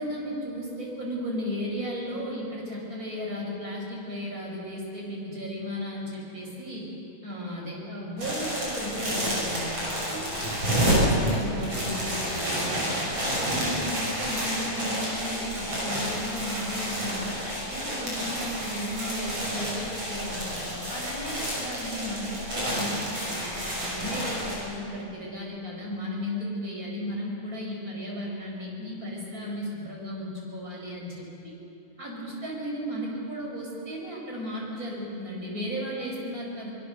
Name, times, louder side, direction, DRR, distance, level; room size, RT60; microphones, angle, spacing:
voice 1, 0.0-6.9 7.2-9.8 10.0-10.3 10.7-17.4 17.7-31.5 32.0-36.7, equal, 25° right, -2 dB, 5.5 m, -35 dB
sound 1, 8.2-24.6, equal, 40° right, 7.5 m, -29 dB
24.5 x 21.0 x 6.8 m, 2.7 s
omnidirectional pair, 4.0 m